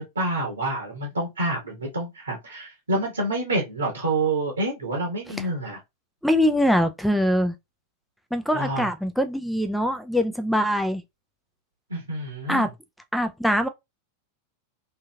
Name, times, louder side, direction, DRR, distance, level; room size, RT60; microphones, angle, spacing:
voice 1, 0.0-5.8 8.5-8.9 11.9-12.7, right 2 dB, 75° right, 1.0 m, -28 dB
voice 2, 6.2-7.5 8.3-11.0 12.5-12.7 13.1-13.7, equal, ahead, 0.4 m, -23 dB
2.8 x 2.6 x 2.2 m
figure-of-eight pair, 90°, 0 cm